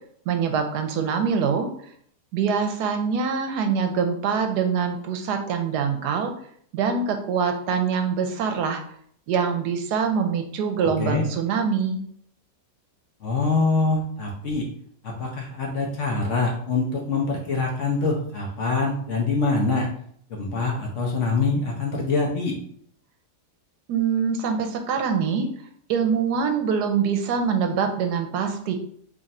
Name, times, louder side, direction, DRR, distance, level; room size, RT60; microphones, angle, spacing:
voice 1, 0.3-1.7 2.3-6.3 6.7-8.8 9.3-12.0 23.9-25.5 25.9-28.7, right 6 dB, 80° right, 5 dB, 1.1 m, -24 dB
voice 2, 13.2-14.6 15.0-19.9 20.3-22.5, left 3 dB, 55° left, -1 dB, 0.9 m, -24 dB
3.3 x 2.5 x 4.1 m, 0.62 s
omnidirectional pair, 1.7 m